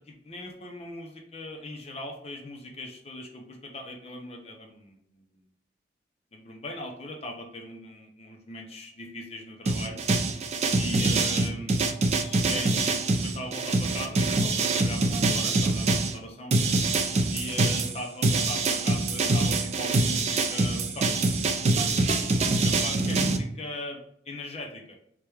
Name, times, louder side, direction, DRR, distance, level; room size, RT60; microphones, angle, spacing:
voice 1, 0.0-5.4 6.3-10.0 10.8-11.8 12.1-16.5 17.3-21.1 22.1-24.0 24.3-25.0, left 1 dB, 35° left, 2 dB, 0.6 m, -39 dB
sound 1, 9.7-16.1 16.5-23.4, right 3 dB, 35° right, 0.4 m, -25 dB
4.6 x 2.3 x 3.3 m, 0.71 s
head